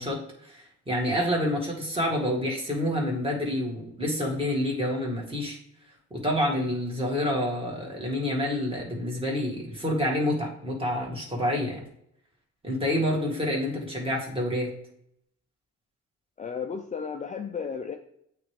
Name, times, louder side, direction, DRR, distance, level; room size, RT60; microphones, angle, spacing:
voice 1, 0.0-5.6 6.1-11.8 12.6-14.7, left 1 dB, 20° right, -3 dB, 2.0 m, -28 dB
voice 2, 16.4-18.0, left 6 dB, 25° left, 4 dB, 0.5 m, -33 dB
8.6 x 3.4 x 3.3 m, 0.72 s
cardioid pair, 90°, 30 cm